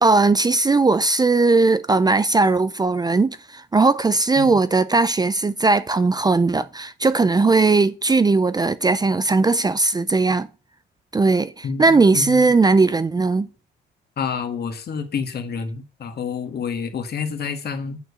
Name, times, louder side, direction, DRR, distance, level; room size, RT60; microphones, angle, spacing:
voice 1, 0.0-10.5 11.1-13.5, right 3 dB, 20° right, 0.5 m, -18 dB
voice 2, 11.6-12.5 14.2-18.0, left 6 dB, 55° left, 1.7 m, -29 dB
9.1 x 4.6 x 6.9 m
cardioid pair, 90°, 20 cm